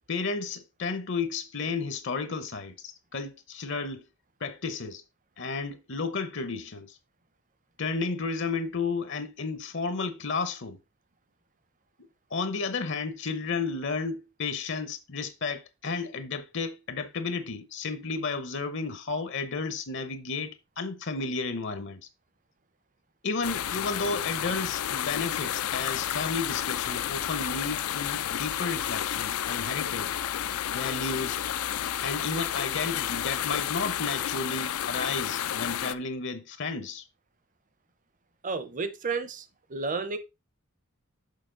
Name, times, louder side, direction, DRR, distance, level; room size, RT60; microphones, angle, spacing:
voice 1, 0.1-4.1 4.4-5.0 5.4-7.0 7.8-10.8 12.0-22.0 23.2-30.1 30.7-31.4 32.0-37.1, left 4 dB, 55° left, 0.7 m, -32 dB
sound 1, 23.4-35.9, left 10 dB, 80° left, 0.4 m, -31 dB
voice 2, 38.4-39.4 39.7-40.2, right 4 dB, 35° right, 0.7 m, -31 dB
6.6 x 5.7 x 3.8 m
head